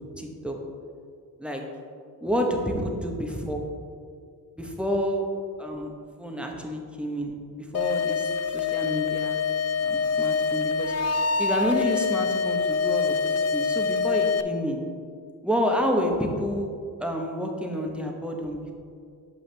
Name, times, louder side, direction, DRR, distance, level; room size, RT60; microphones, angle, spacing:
voice 1, 0.2-0.5 1.4-1.6 2.2-3.6 4.6-5.2 5.6-5.9 6.2-7.4 7.7-9.4 9.8-10.9 11.4-14.8 15.4-18.7, equal, 5° right, 1 dB, 1.1 m, -29 dB
sound 1, 7.7-14.4, left 5 dB, 40° left, 0.4 m, -25 dB
7.2 x 5.5 x 3.4 m, 2.3 s
supercardioid pair, 45°, 39 cm